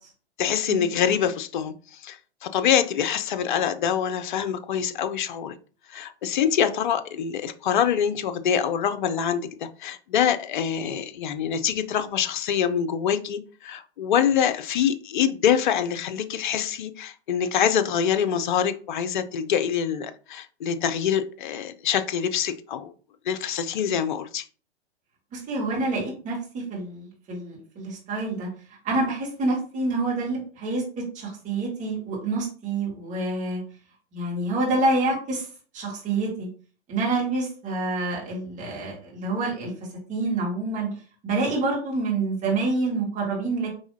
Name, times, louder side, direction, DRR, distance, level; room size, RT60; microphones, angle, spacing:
voice 1, 0.4-5.6 5.9-22.9 23.3-24.4, left 8 dB, 45° left, 0.6 m, -25 dB
voice 2, 25.3-28.5 28.8-30.8 31.1-33.6 34.1-35.5 35.7-36.5 36.9-39.7 40.1-40.9 41.2-43.7, right 2 dB, 20° right, 2.0 m, -27 dB
4.8 x 3.4 x 2.7 m
figure-of-eight pair, 110°, 34 cm